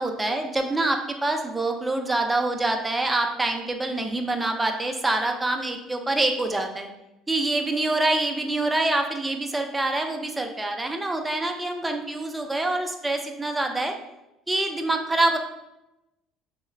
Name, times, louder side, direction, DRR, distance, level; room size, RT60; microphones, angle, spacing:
voice 1, 0.0-6.9 7.3-13.9 14.5-15.4, right 2 dB, 15° right, 5 dB, 0.4 m, -25 dB
3.7 x 2.1 x 2.3 m, 0.93 s
hypercardioid pair, 70°, 0 cm